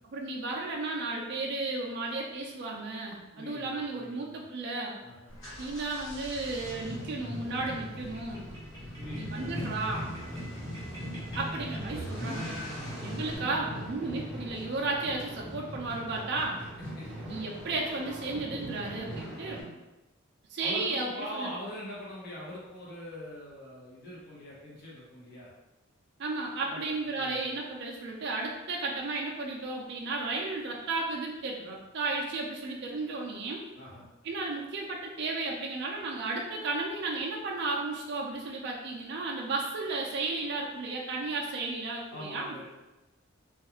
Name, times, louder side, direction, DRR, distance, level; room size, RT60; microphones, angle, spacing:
voice 1, 0.0-5.0 5.6-8.4 9.2-10.1 11.3-12.6 13.0-16.6 17.3-19.7 20.5-21.5 26.2-33.6 34.2-42.5, right 3 dB, 55° right, -1 dB, 0.4 m, -34 dB
voice 2, 3.3-4.4 5.0-5.3 9.0-9.4 10.3-10.6 12.7-13.1 17.0-17.1 20.6-25.5 26.6-27.6 33.7-34.0 42.1-42.6, equal, 50° left, -7 dB, 0.9 m, -43 dB
sound 1, 5.3-13.4, equal, 70° left, 1.3 m, -45 dB
sound 2, 6.5-19.6, equal, 5° right, 0.7 m, -40 dB
sound 3, 8.0-12.4, right 1 dB, 20° left, 1.3 m, -48 dB
2.4 x 2.3 x 2.9 m, 1.0 s
head